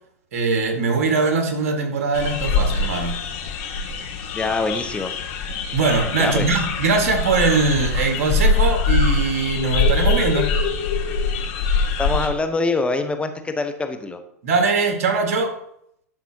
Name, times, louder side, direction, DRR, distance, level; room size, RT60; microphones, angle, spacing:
voice 1, 0.3-3.2 5.5-10.6 14.4-15.5, right 4 dB, 65° right, 4 dB, 1.9 m, -21 dB
sound 1, 2.1-12.3, left 4 dB, 55° left, 1.5 m, -23 dB
voice 2, 4.3-5.1 6.2-6.6 12.0-14.2, left 3 dB, 15° left, 7 dB, 1.1 m, -24 dB
12.0 x 6.0 x 2.9 m, 0.73 s
hypercardioid pair, 100°, 8 cm